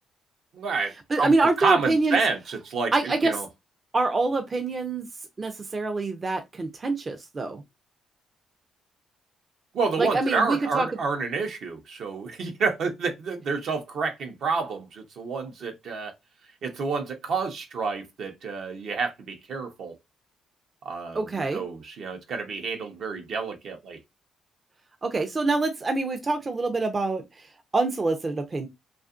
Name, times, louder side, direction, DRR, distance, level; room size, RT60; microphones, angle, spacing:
voice 1, 0.5-3.5 9.7-16.1 16.6-20.0 20.8-24.0, right 4 dB, 65° right, 0.7 m, -29 dB
voice 2, 1.1-2.2 2.9-3.3 3.9-5.1 5.4-7.6 10.0-10.9 21.1-21.6 25.0-27.5 27.7-28.7, right 3 dB, 30° right, 0.4 m, -25 dB
2.7 x 2.4 x 2.4 m
cardioid pair, 90°, 0 cm